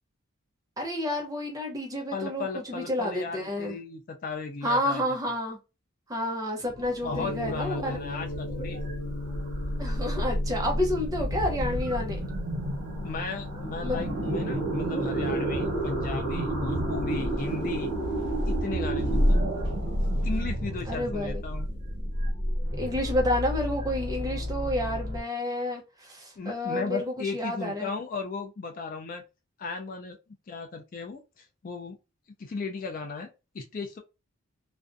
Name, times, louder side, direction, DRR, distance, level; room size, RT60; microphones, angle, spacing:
voice 1, 0.8-3.8 4.6-5.6 6.1-8.0 9.8-12.3 13.8-14.0 20.9-21.4 22.8-27.9, left 1 dB, 15° right, 0.6 m, -30 dB
voice 2, 2.1-5.0 6.8-8.8 13.0-17.9 18.5-19.4 20.2-21.7 26.4-29.2 29.6-30.2 30.5-32.0 32.4-33.3 33.5-34.0, left 4 dB, 40° left, 0.3 m, -36 dB
sound 1, 6.6-24.4, right 1 dB, 80° right, 1.0 m, -31 dB
Gong, 7.1-17.8, left 2 dB, 85° left, 0.7 m, -39 dB
sound 2, 13.9-25.2, left 1 dB, 55° right, 0.7 m, -32 dB
2.5 x 2.1 x 2.5 m
head